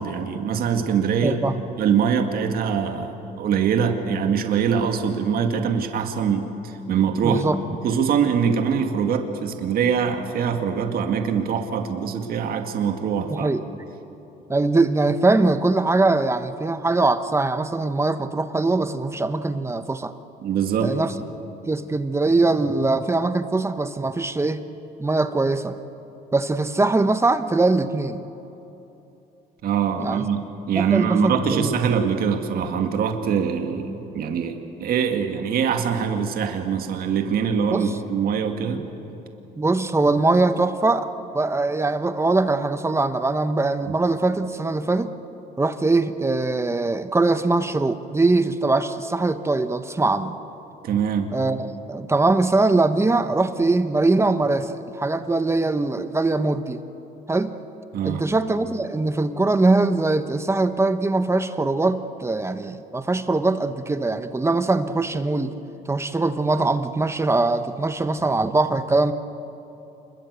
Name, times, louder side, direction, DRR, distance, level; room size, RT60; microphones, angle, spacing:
voice 1, 0.0-1.4 1.8-7.5 7.8-13.5 20.4-21.0 29.6-38.9 43.9-44.0 50.8-51.3 57.9-58.3, right 7 dB, 60° right, 5 dB, 2.2 m, -23 dB
voice 2, 1.2-1.6 7.2-7.6 13.3-13.6 14.5-20.1 20.8-21.1 21.7-24.6 25.0-25.8 26.3-28.2 30.0-30.2 30.7-31.7 37.7-38.0 39.6-45.1 45.6-50.4 51.3-56.8 57.3-57.5 58.0-65.5 65.9-69.1, right 3 dB, 15° right, 10 dB, 1.1 m, -22 dB
28.0 x 22.0 x 8.3 m, 3.0 s
cardioid pair, 110°, 17 cm